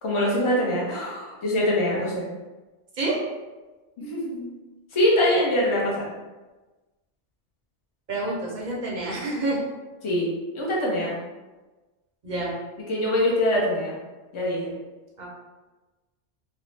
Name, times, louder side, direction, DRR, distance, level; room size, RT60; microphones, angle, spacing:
voice 1, 0.0-2.2 4.0-4.5 4.9-6.1 10.0-10.3 10.5-11.2 12.9-14.0 14.3-14.7, left 1 dB, 35° left, -4 dB, 0.6 m, -23 dB
voice 2, 8.1-9.6 12.2-12.6 15.2-15.3, right 2 dB, 50° right, -3 dB, 0.6 m, -28 dB
2.6 x 2.0 x 3.1 m, 1.2 s
omnidirectional pair, 1.2 m